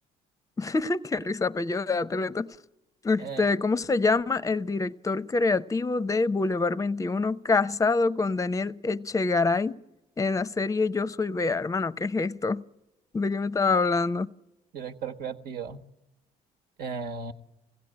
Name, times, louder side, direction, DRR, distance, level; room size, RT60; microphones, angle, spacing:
voice 1, 0.6-2.6 3.0-9.8 10.2-12.6 13.1-14.3, left 3 dB, 20° left, 0.6 m, -26 dB
voice 2, 14.7-15.8 16.8-17.3, right 5 dB, 65° right, 1.4 m, -35 dB
21.0 x 16.0 x 8.8 m
supercardioid pair, 75°, 17 cm